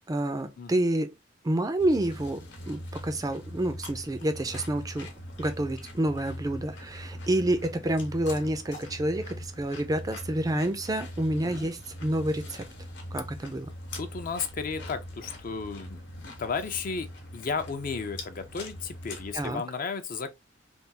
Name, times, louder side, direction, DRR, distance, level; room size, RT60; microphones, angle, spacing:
voice 1, 0.1-1.1 1.4-5.1 5.4-12.6 13.1-13.7 19.3-19.6, right 1 dB, 20° right, 0.4 m, -28 dB
sound 1, 1.8-19.5, left 1 dB, 65° left, 1.0 m, -42 dB
voice 2, 13.9-17.1 17.3-20.3, left 5 dB, 45° left, 0.5 m, -34 dB
3.4 x 2.3 x 2.7 m
head